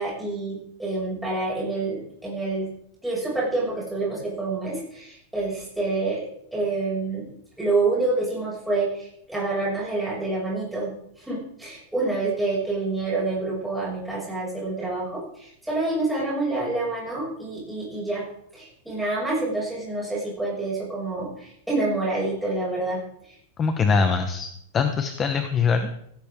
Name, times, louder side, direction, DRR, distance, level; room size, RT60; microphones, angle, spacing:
voice 1, 0.0-2.7 3.0-7.3 7.6-18.3 18.5-23.4, right 2 dB, 5° right, -6 dB, 6.4 m, -27 dB
voice 2, 23.6-24.5 24.7-25.9, left 5 dB, 20° left, 7 dB, 1.0 m, -22 dB
17.0 x 16.5 x 3.7 m, 0.73 s
supercardioid pair, 170°, 0 cm